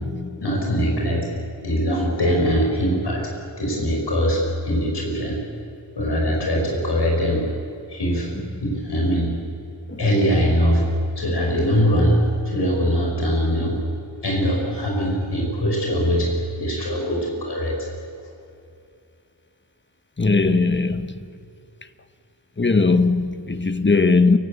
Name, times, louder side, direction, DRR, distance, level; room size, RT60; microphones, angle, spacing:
voice 1, 0.4-1.3 1.6-3.3 3.6-5.4 6.0-7.4 7.9-8.3 8.6-9.3 10.0-10.8 11.2-12.2 12.4-13.8 14.2-17.9, equal, 65° left, 5.5 m, -22 dB
voice 2, 20.2-21.3 22.6-24.4, left 3 dB, 25° left, 1.2 m, -19 dB
29.0 x 17.0 x 8.5 m
wide cardioid pair, 85°, 44 cm